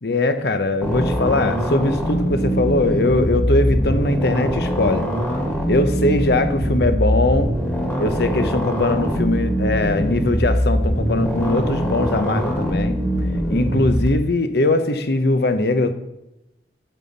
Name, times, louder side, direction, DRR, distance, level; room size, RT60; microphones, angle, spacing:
voice 1, 0.0-5.1 5.7-7.5 8.0-13.0 13.5-15.9, left 2 dB, 65° left, 9 dB, 0.9 m, -20 dB
sound 1, 0.8-14.1, equal, 15° left, 1.8 m, -22 dB
9.0 x 7.7 x 4.1 m, 0.88 s
head